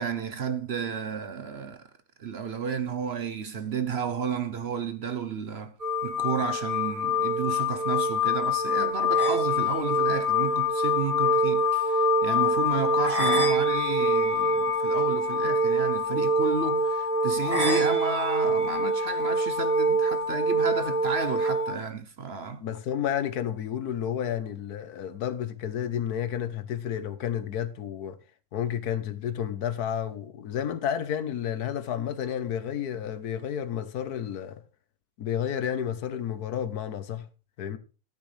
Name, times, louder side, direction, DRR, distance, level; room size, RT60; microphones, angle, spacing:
voice 1, 0.0-1.8 2.2-5.7 6.0-22.6, right 5 dB, 50° right, 1.0 m, -32 dB
sound 1, 5.8-21.7, left 1 dB, 25° right, 1.7 m, -25 dB
voice 2, 22.6-28.2 28.5-34.6 35.2-37.3 37.6-37.8, left 9 dB, 85° left, 1.4 m, -31 dB
14.0 x 8.4 x 3.3 m
omnidirectional pair, 1.6 m